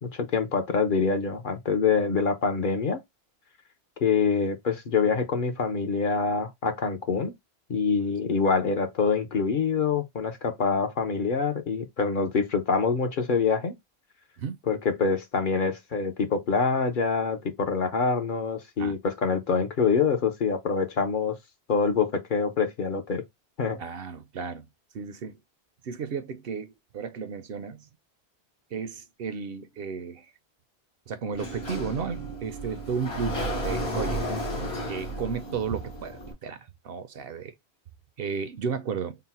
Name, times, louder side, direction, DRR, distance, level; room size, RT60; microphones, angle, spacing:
voice 1, 0.0-3.0 4.0-7.3 7.7-13.7 14.7-21.4 21.7-23.2 23.6-23.8, left 5 dB, 55° left, 0.9 m, -25 dB
voice 2, 23.8-24.6 24.9-25.4 25.8-27.8 28.7-30.3 31.1-34.2 34.9-36.6 36.8-37.5 38.2-39.2, right 6 dB, 65° right, 0.8 m, -33 dB
Sliding door, 31.3-36.3, equal, 70° left, 1.4 m, -33 dB
3.9 x 2.1 x 4.1 m
omnidirectional pair, 1.1 m